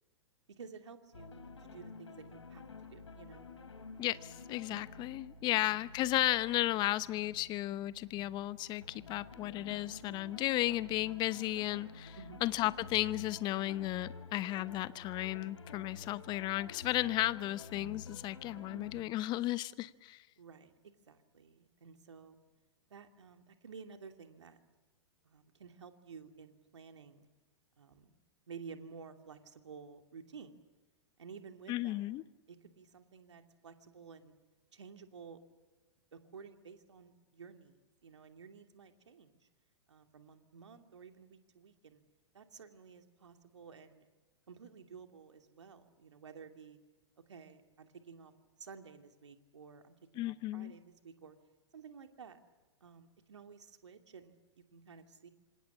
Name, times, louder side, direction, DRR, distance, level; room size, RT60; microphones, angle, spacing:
voice 1, 0.5-2.6 2.9-3.5 5.5-5.9 12.2-12.4 18.5-18.8 20.4-22.4 22.9-24.6 25.2-27.3 27.8-28.2 28.5-30.5 31.2-32.1 32.5-34.3 34.7-35.4 36.1-39.5 39.9-42.0 42.3-44.1 44.5-46.8 47.3-48.3 48.6-51.4 51.7-52.4 52.8-55.3, right 6 dB, 75° right, 6 dB, 2.7 m, -53 dB
sound 1, 1.1-19.0, left 4 dB, 75° left, 3.6 m, -50 dB
voice 2, 4.0-20.2 31.7-32.2 50.2-50.7, left 16 dB, 30° left, 17 dB, 0.9 m, -34 dB
26.5 x 26.0 x 7.2 m, 1.2 s
figure-of-eight pair, 110°, 15 cm